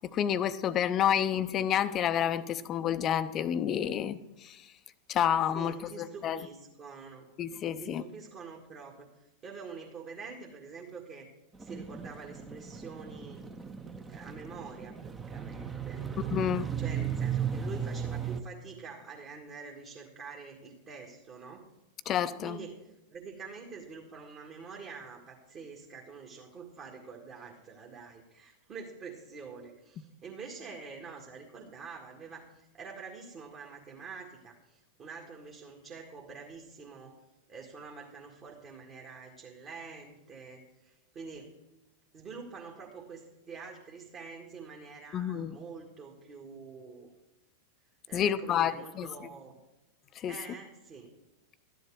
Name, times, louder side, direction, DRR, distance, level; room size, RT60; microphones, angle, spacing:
voice 1, 0.1-4.6 5.1-6.4 7.4-8.0 16.3-16.7 22.1-22.6 45.1-45.6 48.1-49.1 50.2-50.3, left 9 dB, 30° left, 13 dB, 0.6 m, -29 dB
voice 2, 5.5-7.3 7.8-11.3 11.6-13.4 14.1-16.1 16.8-21.6 22.4-37.2 37.5-41.5 42.1-47.1 48.1-49.6 50.2-51.1, right 5 dB, 30° right, -1 dB, 1.9 m, -46 dB
sound 1, 11.5-18.4, right 8 dB, 15° right, 0.9 m, -36 dB
13.0 x 10.5 x 4.7 m, 0.99 s
figure-of-eight pair, 90°, 0 cm